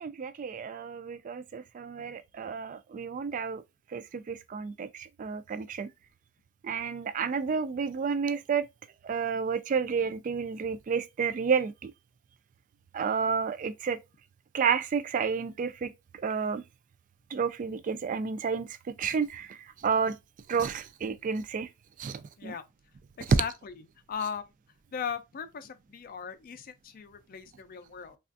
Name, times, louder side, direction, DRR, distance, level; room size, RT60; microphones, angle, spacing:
voice 1, 0.0-3.6 3.9-5.9 6.6-8.6 9.0-11.9 12.9-14.0 14.5-15.9 16.2-16.6 17.3-20.1 20.5-21.7 22.0-22.5 23.3-23.4, right 6 dB, 40° right, 0.3 m, -30 dB
voice 2, 23.2-24.5 24.9-28.2, left 7 dB, 45° left, 0.4 m, -38 dB
3.3 x 2.3 x 2.5 m
head